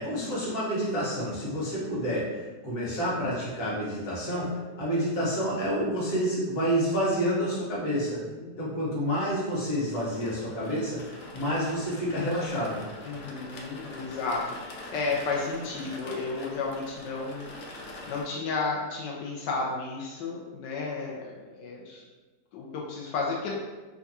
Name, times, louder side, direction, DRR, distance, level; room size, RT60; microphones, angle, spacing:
voice 1, 0.0-8.2 8.6-12.8, equal, 55° left, -7 dB, 1.6 m, -29 dB
voice 2, 8.3-9.0 13.0-17.6 18.1-22.0 22.5-23.6, left 3 dB, 85° left, -3 dB, 1.3 m, -33 dB
sound 1, 9.2-18.2, left 1 dB, 70° left, 0.7 m, -44 dB
3.5 x 2.3 x 4.1 m, 1.2 s
omnidirectional pair, 1.8 m